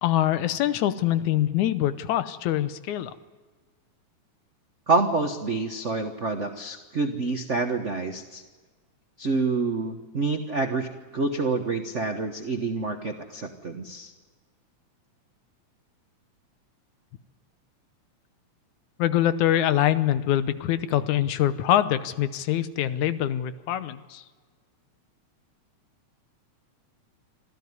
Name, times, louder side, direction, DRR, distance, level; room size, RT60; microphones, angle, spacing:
voice 1, 0.0-3.1 19.0-24.2, left 12 dB, 80° left, 13 dB, 2.3 m, -24 dB
voice 2, 4.9-8.4 9.2-14.1, right 3 dB, 80° right, 5 dB, 0.6 m, -27 dB
26.0 x 14.5 x 9.6 m, 1.4 s
omnidirectional pair, 3.4 m